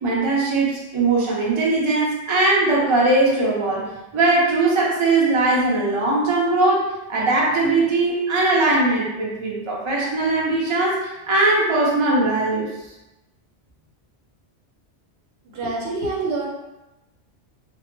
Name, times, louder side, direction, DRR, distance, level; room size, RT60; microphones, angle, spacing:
voice 1, 0.0-3.8 4.1-6.8 7.1-12.7, right 2 dB, 45° right, -4 dB, 0.4 m, -20 dB
voice 2, 15.5-16.5, right 3 dB, 65° right, -3 dB, 0.8 m, -26 dB
2.0 x 2.0 x 3.1 m, 0.99 s
omnidirectional pair, 1.2 m